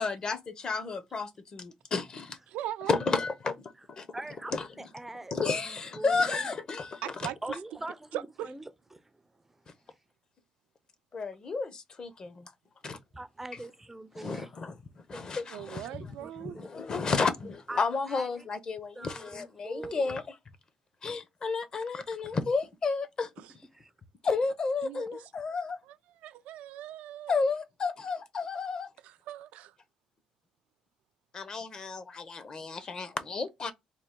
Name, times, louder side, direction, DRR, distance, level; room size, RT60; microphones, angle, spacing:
voice 1, 0.0-2.4 2.9-3.6 3.9-4.1 4.5-4.7 5.3-7.0 11.1-12.5 12.8-13.0 14.1-14.8 15.1-16.1 16.4-20.2 21.0-23.3 24.2-25.8 27.3-28.9 31.3-33.7, left 4 dB, 35° left, 0.6 m, -32 dB
voice 2, 2.5-2.9 7.0-7.4 8.1-8.5 15.5-16.6 23.4-23.5 24.8-25.3 25.9-26.0 26.2-27.3 29.0-29.7 32.7-32.9, right 12 dB, 85° right, 0.3 m, -40 dB
voice 3, 4.1-6.5 7.4-8.6 8.9-9.2 13.1-14.5 15.1-15.3 15.8-16.7 17.7-18.4 18.9-20.2 23.7-23.9, right 2 dB, 10° right, 0.4 m, -43 dB
3.6 x 2.3 x 3.6 m
cardioid pair, 110°, 2 cm